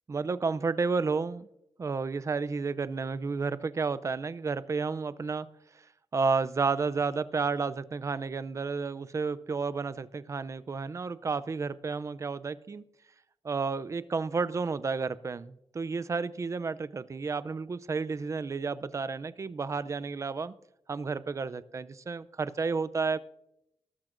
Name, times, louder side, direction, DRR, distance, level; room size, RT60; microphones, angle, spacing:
voice 1, 0.1-1.5 1.8-5.5 5.7-5.8 6.1-12.8 13.4-20.5 20.9-23.2, right 4 dB, 30° right, 0.4 m, -31 dB
19.5 x 12.0 x 2.5 m
wide cardioid pair, 170°, 10 cm